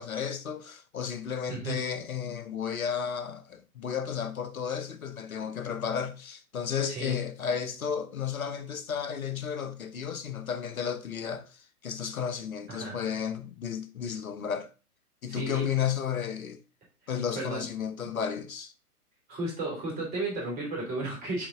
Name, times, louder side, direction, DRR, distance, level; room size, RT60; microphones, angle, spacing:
voice 1, 0.0-14.7 15.2-16.6 17.1-18.7, left 7 dB, 65° left, 0.9 m, -33 dB
voice 2, 1.5-1.8 6.9-7.2 12.7-13.0 15.3-15.6 17.3-17.7 19.3-21.5, right 2 dB, 20° right, 2.9 m, -34 dB
7.2 x 3.9 x 3.7 m
figure-of-eight pair, 125°, 46 cm